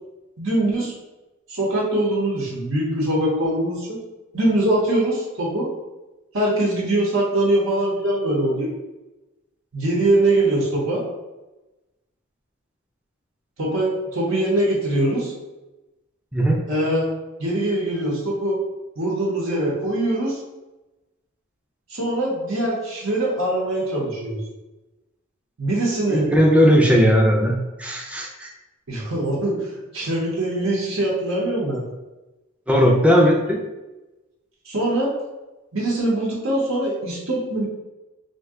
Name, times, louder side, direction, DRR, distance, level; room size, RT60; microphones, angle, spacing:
voice 1, 0.4-0.9 1.5-4.0 4.3-5.7 6.3-8.7 9.7-11.0 13.6-15.3 16.7-17.1 17.4-18.6 19.0-20.4 21.9-24.4 25.6-26.3 28.9-29.6 29.9-31.8 34.6-35.1 35.7-37.7, right 1 dB, 75° right, -4 dB, 0.9 m, -22 dB
voice 2, 16.3-16.6 26.1-28.5 32.7-33.6, equal, 5° right, 0 dB, 0.4 m, -17 dB
2.6 x 2.2 x 3.5 m, 1.1 s
head